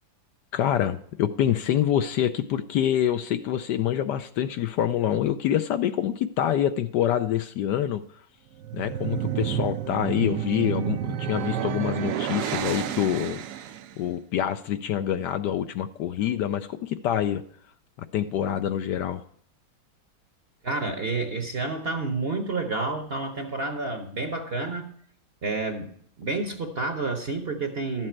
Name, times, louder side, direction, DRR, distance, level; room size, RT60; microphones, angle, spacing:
voice 1, 0.5-8.0 8.7-13.4 14.0-17.4 18.1-19.2, left 10 dB, 75° left, 10 dB, 1.1 m, -26 dB
sound 1, 8.5-14.0, right 10 dB, 70° right, 1.0 m, -30 dB
voice 2, 20.6-24.9 25.4-25.9 26.2-28.1, right 3 dB, 40° right, 5 dB, 0.9 m, -29 dB
12.5 x 7.6 x 4.4 m, 0.64 s
omnidirectional pair, 2.1 m